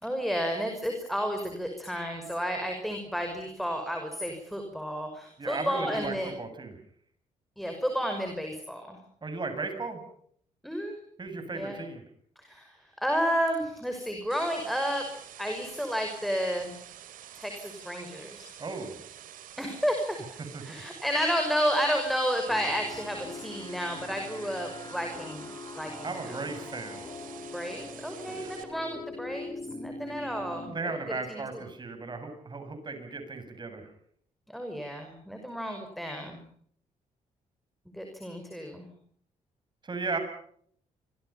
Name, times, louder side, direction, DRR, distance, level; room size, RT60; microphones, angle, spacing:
voice 1, 0.0-6.3 7.6-9.0 10.6-10.9 11.5-11.8 12.4-15.0 15.4-16.7 17.4-18.4 19.6-20.2 20.6-25.5 25.8-26.4 27.5-31.4 34.5-36.4 37.9-38.9, equal, ahead, 4 dB, 5.8 m, -31 dB
voice 2, 5.4-6.8 9.2-10.0 11.2-12.0 18.6-19.0 20.5-20.6 26.0-27.0 28.3-28.5 30.7-33.9 39.8-40.2, right 3 dB, 35° right, 8 dB, 7.7 m, -36 dB
sound 1, 14.3-28.6, right 11 dB, 85° right, 3.5 m, -48 dB
sound 2, 22.5-30.7, left 2 dB, 30° left, 3.9 m, -42 dB
28.5 x 25.5 x 5.8 m, 0.63 s
cardioid pair, 90°, 14 cm